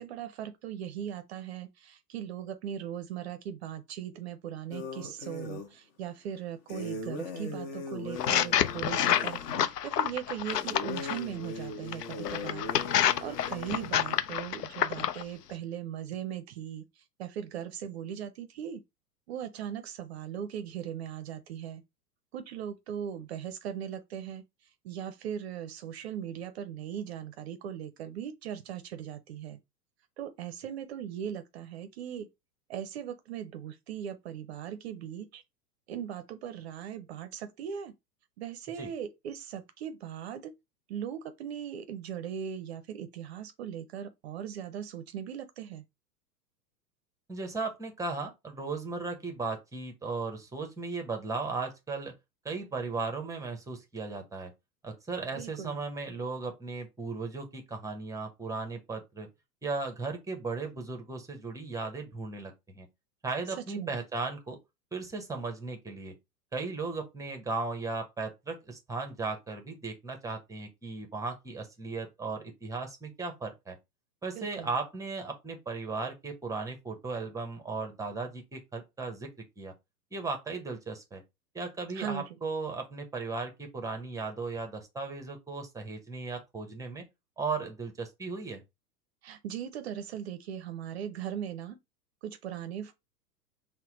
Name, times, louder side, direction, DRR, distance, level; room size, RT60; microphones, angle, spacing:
voice 1, 0.0-12.7 13.2-18.8 19.3-21.8 22.3-29.6 30.2-32.3 32.7-35.4 35.9-37.9 38.4-40.5 40.9-45.8 55.4-55.8 63.6-64.0 74.3-74.7 82.0-82.3 89.2-91.8 92.2-92.9, right 9 dB, 40° right, 0.5 m, -39 dB
sound 1, 4.7-5.7 6.7-9.7 10.5-14.2, left 3 dB, 40° left, 1.1 m, -40 dB
sound 2, 8.2-11.2 11.9-15.2, left 10 dB, 70° left, 0.6 m, -28 dB
voice 2, 47.3-52.1 52.4-54.5 54.8-59.3 59.6-62.9 63.2-64.6 64.9-66.1 66.5-73.8 74.2-79.3 79.6-79.7 80.1-81.2 81.5-87.0 87.4-88.6, right 3 dB, 5° right, 0.7 m, -36 dB
5.6 x 2.1 x 3.7 m
figure-of-eight pair, 100°, 49 cm